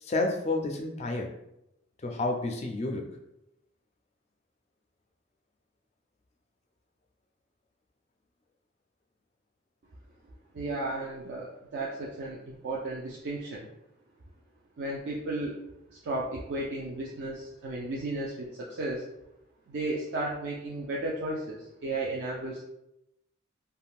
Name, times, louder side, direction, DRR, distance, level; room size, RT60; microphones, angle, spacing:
voice 1, 0.0-1.3 2.0-3.1, left 2 dB, 30° left, 3 dB, 0.3 m, -30 dB
voice 2, 10.5-13.7 14.8-15.5 15.9-19.0 19.7-22.6, right 2 dB, 55° right, -4 dB, 0.4 m, -34 dB
3.5 x 2.1 x 2.4 m, 0.86 s
head